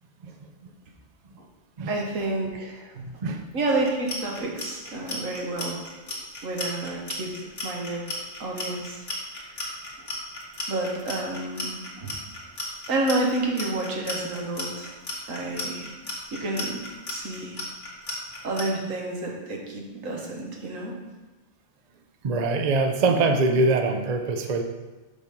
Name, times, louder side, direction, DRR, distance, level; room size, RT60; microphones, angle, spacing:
voice 1, 1.9-3.2 3.5-6.2 6.4-8.0 8.4-9.0 10.7-12.2 12.9-14.9 15.3-15.9 16.3-16.8 17.1-17.6 18.4-21.0, right 2 dB, 80° right, 0 dB, 1.6 m, -30 dB
Clock, 3.8-18.6, left 2 dB, 65° left, 2.0 m, -34 dB
voice 2, 22.2-24.6, right 3 dB, 45° right, 4 dB, 0.6 m, -23 dB
6.2 x 5.5 x 5.1 m, 1.2 s
omnidirectional pair, 1.4 m